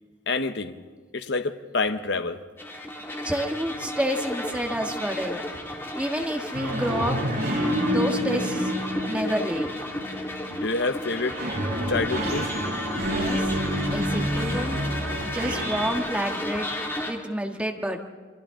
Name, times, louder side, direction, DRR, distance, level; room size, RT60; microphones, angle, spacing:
voice 1, 0.3-0.8 1.1-2.4 10.5-11.4 11.9-12.6, left 3 dB, 60° left, 8 dB, 1.0 m, -27 dB
sound 1, 2.6-17.1, left 1 dB, 10° left, 2.1 m, -33 dB
voice 2, 3.2-5.4 5.9-7.2 7.8-8.7 9.1-9.7 12.2-12.3 13.0-13.6 13.9-14.8 15.3-16.7 17.0-18.0, equal, 5° right, 2 dB, 1.5 m, -29 dB
sound 2, 6.5-10.7 11.1-15.9, equal, 55° right, 7.2 m, -28 dB
28.0 x 24.0 x 3.8 m, 1.4 s
head